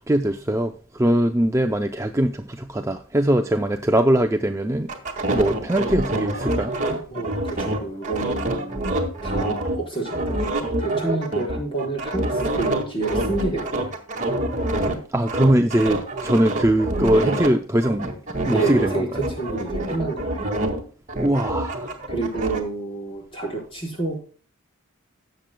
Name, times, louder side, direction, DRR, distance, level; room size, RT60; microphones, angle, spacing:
voice 1, 0.0-4.9 5.3-7.0 15.1-18.1 18.5-19.2 21.2-21.9, right 1 dB, 15° right, 6 dB, 0.5 m, -21 dB
sound 1, 4.9-9.8 10.1-15.0 15.3-17.5 17.8-20.8 21.1-22.6, right 1 dB, 35° right, 1.8 m, -26 dB
voice 2, 7.1-8.9 9.2-10.5 10.8-13.8 18.5-20.4 22.1-24.2, right 3 dB, 25° left, -1 dB, 4.6 m, -29 dB
17.0 x 7.6 x 2.2 m, 0.39 s
head